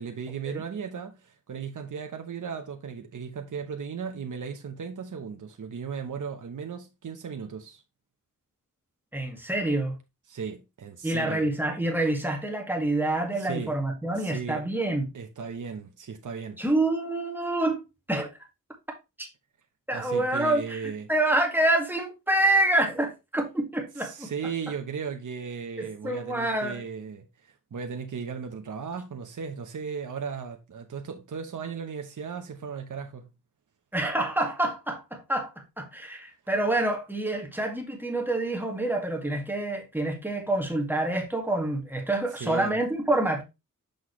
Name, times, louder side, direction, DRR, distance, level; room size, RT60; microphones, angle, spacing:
voice 1, 0.0-7.8 10.3-11.5 13.4-13.7 14.1-14.6 15.1-16.6 19.9-21.1 24.0-33.3 42.4-42.8, right 6 dB, 65° right, 1.0 m, -36 dB
voice 2, 9.1-9.9 11.0-15.1 16.6-17.8 18.1-18.3 19.2-19.3 19.9-24.3 25.8-26.8 33.9-35.5 35.8-43.4, right 2 dB, 5° right, 2.0 m, -27 dB
6.7 x 5.9 x 3.2 m
wide cardioid pair, 105°, 33 cm